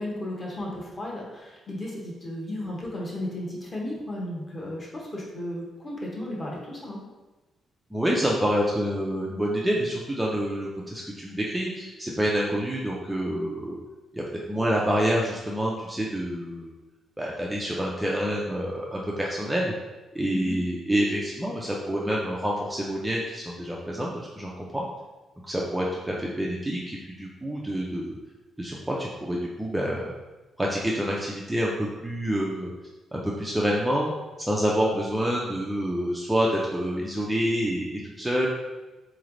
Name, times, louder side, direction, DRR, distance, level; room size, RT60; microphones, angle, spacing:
voice 1, 0.0-7.0 20.3-20.5, left 1 dB, 25° left, -3 dB, 1.0 m, -34 dB
voice 2, 7.9-13.8 14.1-14.2 14.5-16.8 17.2-19.7 20.1-24.1 24.4-24.9 25.4-28.2 28.6-30.1 30.6-32.7 33.1-34.1 34.4-38.5, equal, 5° right, -4 dB, 0.4 m, -27 dB
3.9 x 3.2 x 3.7 m, 1.1 s
cardioid pair, 170°, 0 cm